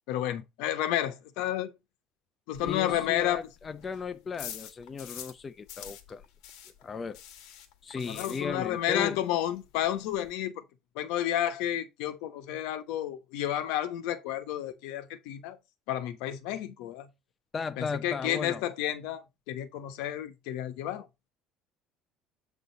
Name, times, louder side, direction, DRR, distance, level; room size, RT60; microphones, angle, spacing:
voice 1, 0.1-1.7 2.5-3.4 8.0-10.6 10.9-15.6 15.9-17.1 17.8-21.1, left 12 dB, 80° left, 1.1 m, -31 dB
sound 1, 2.5-5.4 5.7-8.9 9.1-9.2 9.6-9.7 9.8-10.3, left 10 dB, 65° left, 1.8 m, -46 dB
voice 2, 2.6-6.2 6.8-7.2 7.8-9.2 17.5-18.6, left 5 dB, 20° left, 0.5 m, -36 dB
8.1 x 3.9 x 5.1 m
cardioid pair, 155°, 0 cm